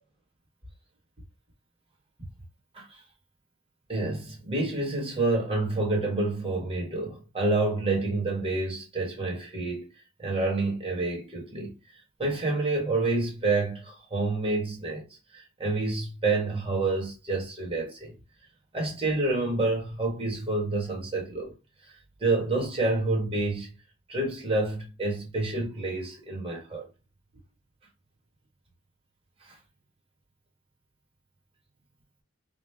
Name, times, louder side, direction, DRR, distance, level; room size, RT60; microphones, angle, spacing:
voice 1, 3.9-9.9 10.2-11.8 12.2-15.1 15.3-18.1 18.7-21.5 21.9-22.0 22.2-23.7 24.1-26.9 29.5-29.6, right 2 dB, 25° right, 1.2 m, -28 dB
4.8 x 2.0 x 3.3 m
head